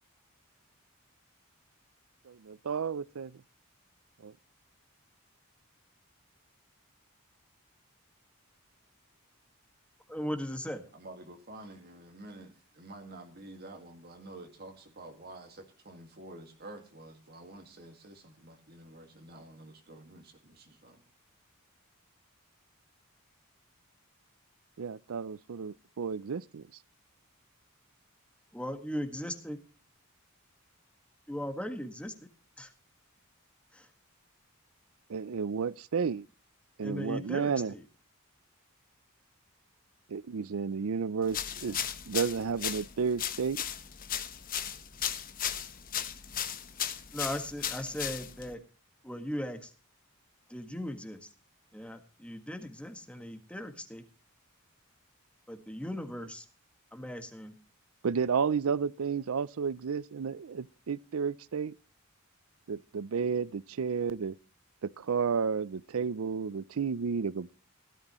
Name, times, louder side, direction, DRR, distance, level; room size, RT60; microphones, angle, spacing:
voice 1, 2.3-3.3 4.2-4.3 24.8-26.6 35.1-36.3 36.8-37.7 40.1-43.6 58.0-61.8 62.7-64.4 64.8-67.5, right 6 dB, 75° right, 0.5 m, -32 dB
voice 2, 10.1-10.8 28.5-29.6 31.3-32.1 32.6-32.7 33.7-33.9 36.8-37.8 47.1-48.6 49.0-49.7 50.5-51.3 51.7-54.0 55.5-56.4 56.9-57.5, equal, 5° left, 1.7 m, -38 dB
voice 3, 10.9-21.0, right 2 dB, 45° right, 1.9 m, -49 dB
sound 1, 41.3-48.5, left 9 dB, 40° left, 1.0 m, -36 dB
17.0 x 12.5 x 3.1 m
head